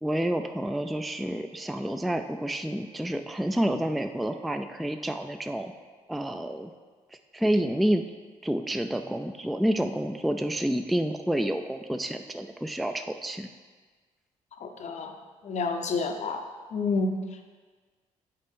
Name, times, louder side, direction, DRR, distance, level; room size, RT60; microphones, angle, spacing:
voice 1, 0.0-5.7 6.1-6.7 7.3-8.0 8.4-13.5, right 1 dB, ahead, 7 dB, 0.3 m, -29 dB
voice 2, 14.6-15.1 15.4-16.4 16.7-17.1, left 4 dB, 55° left, 5 dB, 0.7 m, -29 dB
6.6 x 4.3 x 3.7 m, 1.4 s
supercardioid pair, 65°, 14 cm